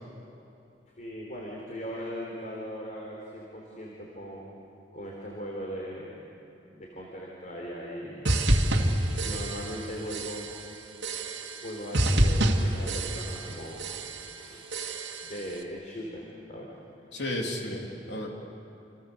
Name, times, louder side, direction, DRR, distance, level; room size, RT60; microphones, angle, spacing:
voice 1, 1.0-4.5 4.9-6.3 6.7-8.4 9.2-10.5 11.6-13.8 14.3-14.8 15.2-16.7, equal, 45° left, -2 dB, 3.8 m, -39 dB
sound 1, 8.2-9.8 10.1-10.6 11.0-11.7 11.9-13.5 13.8-14.3 14.7-15.3, right 1 dB, 75° right, 2.2 m, -27 dB
voice 2, 17.1-18.3, left 1 dB, 65° left, 0 dB, 3.5 m, -33 dB
29.5 x 27.5 x 6.9 m, 2.7 s
head